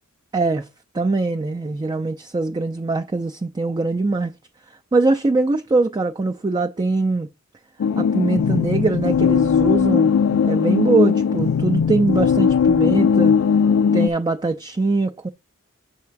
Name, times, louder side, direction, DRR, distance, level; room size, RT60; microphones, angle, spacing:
voice 1, 0.3-0.7 0.9-4.3 4.9-7.3 8.0-10.1 10.4-13.3 13.9-15.3, right 3 dB, 20° right, 0.3 m, -22 dB
sound 1, 7.8-14.1, left 6 dB, 80° left, 0.3 m, -18 dB
7.4 x 3.5 x 5.7 m
head